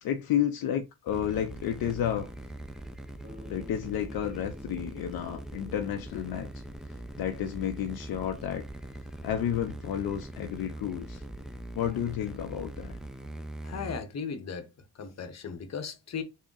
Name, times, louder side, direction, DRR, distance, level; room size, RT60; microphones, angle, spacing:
voice 1, 0.0-2.3 3.5-6.5 7.2-8.7 9.2-11.2 11.7-13.0, left 10 dB, 65° left, 0.5 m, -31 dB
sound 1, 1.1-14.0, right 1 dB, ahead, 0.4 m, -42 dB
Bass guitar, 3.2-7.2, left 2 dB, 20° right, 1.2 m, -52 dB
voice 2, 13.6-14.7 14.9-16.2, left 6 dB, 45° left, 0.8 m, -37 dB
3.5 x 2.1 x 3.8 m
cardioid pair, 70°, 39 cm